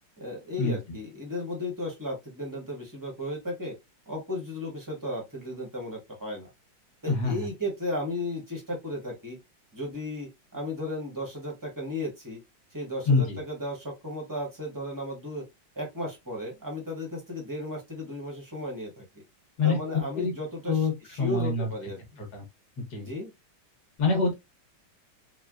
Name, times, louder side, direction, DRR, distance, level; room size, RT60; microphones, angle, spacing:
voice 1, 0.2-3.7 4.1-6.5 7.0-9.4 9.7-12.4 12.7-15.4 15.8-19.0 19.6-22.2 23.0-23.3, left 1 dB, 20° right, 0.5 m, -35 dB
voice 2, 7.1-7.5 13.1-13.4 19.6-19.8 20.1-20.3 20.7-20.9 21.2-21.7 22.3-22.4 22.8-23.1 24.0-24.3, left 4 dB, 65° left, 1.6 m, -25 dB
4.1 x 2.2 x 2.4 m
omnidirectional pair, 2.0 m